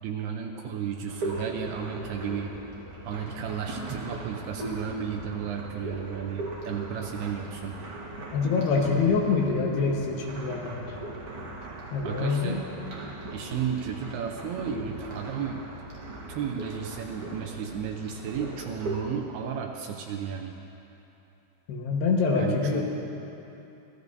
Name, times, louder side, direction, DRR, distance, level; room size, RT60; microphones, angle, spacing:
voice 1, 0.0-2.5 3.0-7.8 11.7-12.6 13.3-15.6 16.3-20.5 22.4-22.8, right 7 dB, 75° right, 2 dB, 2.5 m, -33 dB
sound 1, 1.1-19.1, right 2 dB, 55° right, 1.7 m, -39 dB
voice 2, 8.3-10.8 11.9-12.6 21.7-22.8, left 4 dB, 75° left, -1 dB, 3.2 m, -25 dB
26.0 x 16.0 x 2.7 m, 2.9 s
omnidirectional pair, 5.1 m